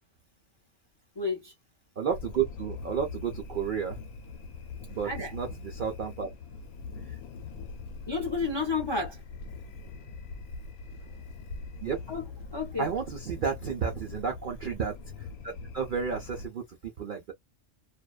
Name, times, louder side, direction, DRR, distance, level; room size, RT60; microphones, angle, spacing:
voice 1, 1.2-1.5 5.0-5.3 7.1-7.2 8.1-9.2 12.1-12.3 12.5-12.9, left 4 dB, 35° left, 0.4 m, -31 dB
voice 2, 2.0-4.0 4.9-6.3 11.8-12.0 12.8-17.3, right 7 dB, 65° right, 0.5 m, -32 dB
sound 1, 2.1-16.5, left 4 dB, 90° left, 1.1 m, -42 dB
2.5 x 2.1 x 2.3 m
omnidirectional pair, 1.5 m